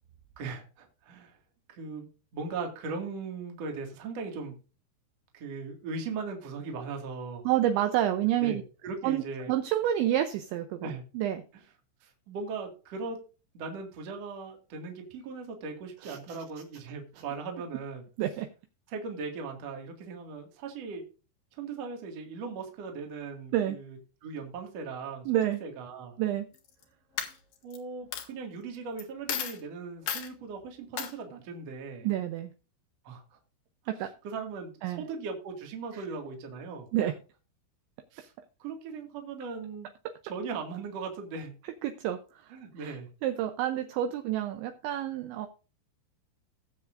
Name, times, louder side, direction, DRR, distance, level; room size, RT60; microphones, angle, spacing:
voice 1, 0.4-1.4 1.7-4.6 5.3-7.4 8.4-9.5 10.8-11.0 12.0-13.2 13.5-18.0 18.9-21.0 21.5-25.3 25.6-26.2 27.2-27.4 27.6-32.1 33.0-33.4 34.2-36.9 38.1-38.3 38.6-39.9 40.2-41.5 42.5-43.1, right 4 dB, 50° right, 3 dB, 2.0 m, -39 dB
voice 2, 7.5-8.6 9.0-11.4 16.0-16.4 18.2-18.5 23.5-23.8 25.3-25.6 26.2-26.5 32.0-32.5 33.9-34.1 34.8-35.0 35.9-36.0 36.9-37.1 41.8-42.5 42.8-45.5, right 12 dB, 80° right, 7 dB, 2.7 m, -29 dB
Coin (dropping), 26.5-26.8 27.2-27.8 28.1-28.2 29.0-29.1 29.3-29.6 30.1-30.3 31.0-31.1, left 9 dB, 70° left, 2.1 m, -33 dB
19.0 x 7.2 x 2.5 m, 0.34 s
omnidirectional pair, 5.9 m